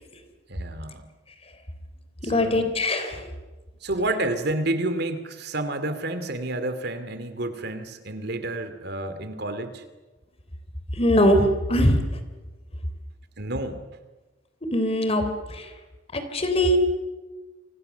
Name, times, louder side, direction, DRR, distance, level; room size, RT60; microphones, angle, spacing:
voice 1, 0.5-1.0 2.2-2.7 3.8-9.8 13.4-13.8, right 2 dB, 60° right, 10 dB, 2.6 m, -29 dB
voice 2, 2.2-3.3 10.9-12.2 14.7-15.2 15.5-15.7 16.1-16.8, left 1 dB, 35° left, 8 dB, 3.5 m, -22 dB
30.0 x 26.0 x 6.9 m, 1.2 s
head